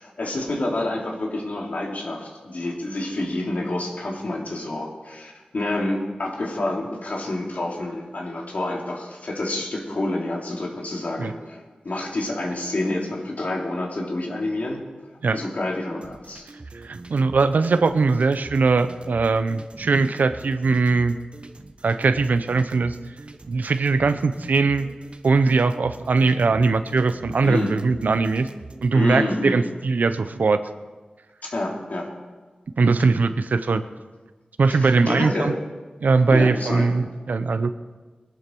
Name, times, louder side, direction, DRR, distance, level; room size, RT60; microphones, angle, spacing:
voice 1, 0.0-14.8 15.3-16.5 27.4-27.7 28.9-29.6 31.4-32.1 34.7-35.6 36.3-36.9, left 2 dB, 65° left, -1 dB, 3.1 m, -28 dB
sound 1, 16.0-28.9, right 3 dB, 45° right, 1.1 m, -43 dB
voice 2, 16.8-21.2 21.8-23.0 23.5-24.9 25.2-28.5 28.8-30.6 32.8-33.8 34.6-35.5 36.0-37.7, right 4 dB, 90° right, 11 dB, 0.8 m, -20 dB
21.5 x 11.0 x 4.6 m, 1.3 s
wide cardioid pair, 75°, 3 cm